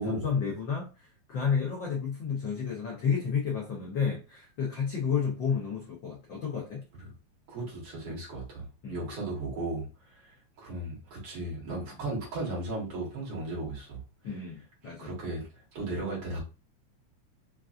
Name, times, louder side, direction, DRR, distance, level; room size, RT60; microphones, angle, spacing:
voice 1, 0.0-6.8 8.8-9.1 14.2-15.1, left 6 dB, 75° left, 1.0 m, -31 dB
voice 2, 7.5-14.0 15.0-16.4, right 2 dB, 55° right, 2.3 m, -36 dB
5.3 x 2.4 x 2.4 m
omnidirectional pair, 3.3 m